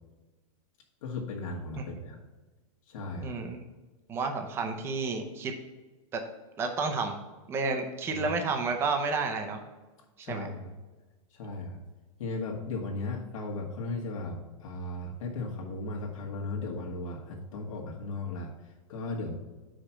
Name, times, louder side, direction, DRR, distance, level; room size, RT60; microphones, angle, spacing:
voice 1, 1.0-2.2 2.9-3.3 8.1-8.3 10.2-10.7 11.3-11.8 12.2-19.4, left 3 dB, 70° left, -2 dB, 1.4 m, -36 dB
voice 2, 3.2-3.6 4.1-5.5 6.1-6.2 6.6-7.2 7.5-9.6 10.2-10.5, right 4 dB, 15° right, 4 dB, 0.6 m, -31 dB
5.7 x 5.0 x 5.7 m, 1.2 s
supercardioid pair, 160°, 18 cm